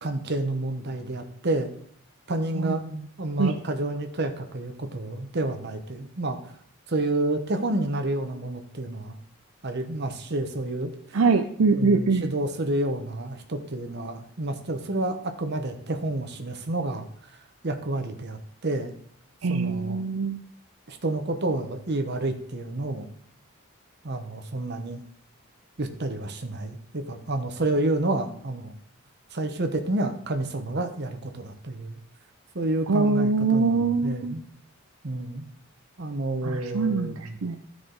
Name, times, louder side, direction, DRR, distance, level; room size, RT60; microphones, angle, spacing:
voice 1, 0.0-1.7 2.3-2.8 3.2-6.4 6.9-9.2 9.6-11.2 11.7-17.1 17.6-18.9 19.5-20.0 20.9-23.1 24.0-25.0 25.8-28.8 29.3-32.0 32.5-34.4 35.0-35.5 36.0-37.4, right 2 dB, 50° right, 6 dB, 1.0 m, -29 dB
voice 2, 11.1-12.3 19.4-20.4 32.9-34.3 36.4-37.6, right 4 dB, 70° right, 6 dB, 0.5 m, -23 dB
13.5 x 4.8 x 4.0 m, 0.63 s
head